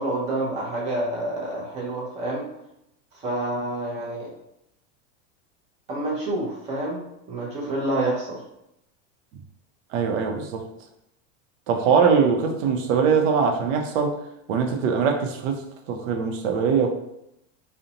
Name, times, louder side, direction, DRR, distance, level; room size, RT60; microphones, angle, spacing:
voice 1, 0.0-2.4 3.1-4.3 5.9-7.0 7.3-8.4, right 1 dB, 20° right, 0.5 m, -28 dB
voice 2, 9.9-10.6 11.7-14.2 14.5-16.9, right 6 dB, 80° right, 0.6 m, -22 dB
2.5 x 2.1 x 2.7 m
supercardioid pair, 155°, 37 cm